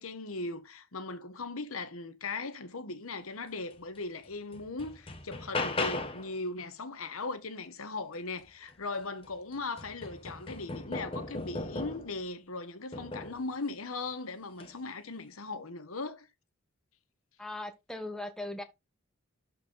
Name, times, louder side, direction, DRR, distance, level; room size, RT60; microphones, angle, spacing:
voice 1, 0.0-16.3, left 3 dB, 75° left, 1.2 m, -39 dB
sound 1, 4.0-4.1 4.5-6.3 8.7-8.8 9.2-12.2 12.9-13.5 14.5-14.8, left 2 dB, 25° left, 1.2 m, -37 dB
voice 2, 17.4-18.6, left 1 dB, 5° left, 1.1 m, -39 dB
12.0 x 4.6 x 3.8 m
head